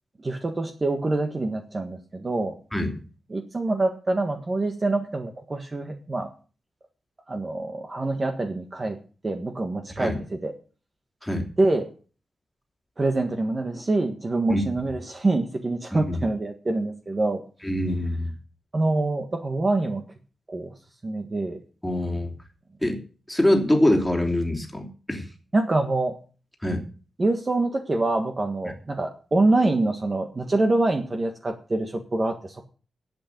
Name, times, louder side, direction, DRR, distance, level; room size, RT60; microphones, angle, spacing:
voice 1, 0.2-2.5 3.3-6.3 7.3-9.0 9.2-10.5 11.6-11.9 13.0-17.4 18.7-20.0 20.5-20.7 21.0-21.6 25.5-26.2 27.2-32.7, right 2 dB, 30° right, 5 dB, 1.5 m, -25 dB
voice 2, 15.9-16.2 17.6-18.3 21.8-22.3 22.8-23.0 23.3-25.2 26.6-26.8, left 1 dB, 5° left, 3 dB, 2.9 m, -24 dB
11.0 x 8.4 x 7.9 m, 0.38 s
wide cardioid pair, 115°, 0 cm